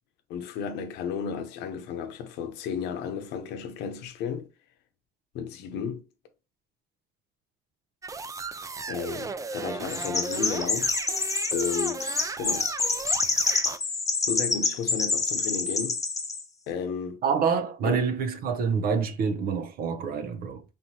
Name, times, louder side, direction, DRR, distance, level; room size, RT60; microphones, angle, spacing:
voice 1, 0.3-4.5 5.3-6.0 8.9-10.9 11.5-12.7 14.3-16.0 16.7-17.2 17.9-18.0, left 7 dB, 90° left, 0.8 m, -33 dB
sound 1, 8.0-13.8, right 4 dB, 20° right, 0.3 m, -36 dB
Chirp tweet, 9.9-16.4, left 4 dB, 20° left, 0.9 m, -27 dB
voice 2, 17.2-20.6, right 6 dB, 60° right, 0.6 m, -27 dB
4.2 x 3.5 x 2.8 m
cardioid pair, 110°, 17 cm